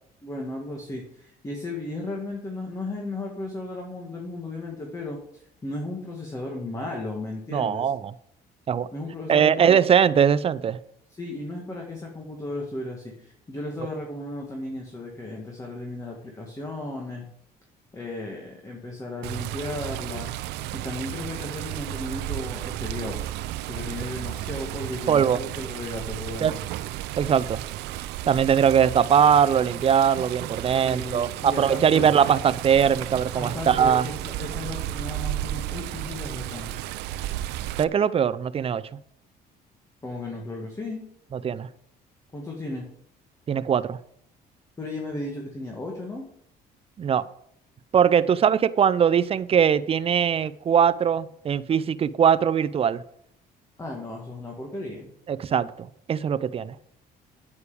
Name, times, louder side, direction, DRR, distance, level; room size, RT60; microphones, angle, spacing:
voice 1, 0.2-7.9 8.9-9.8 11.1-17.3 17.9-20.3 20.7-23.2 23.7-26.6 30.6-32.1 33.3-36.8 40.0-41.0 42.3-42.9 44.8-46.3 53.8-55.1, left 2 dB, 20° left, 0 dB, 2.2 m, -35 dB
voice 2, 7.5-8.0 8.7-8.9 9.3-10.8 25.1-25.4 26.4-26.5 27.2-27.6 28.3-34.1 37.8-38.8 41.3-41.7 43.5-44.0 47.0-47.2 47.9-53.0 55.3-56.7, right 8 dB, 35° right, 15 dB, 0.6 m, -21 dB
Water, 19.2-37.8, right 14 dB, 85° right, 0.5 m, -33 dB
9.5 x 8.6 x 5.2 m, 0.70 s
cardioid pair, 110°, 17 cm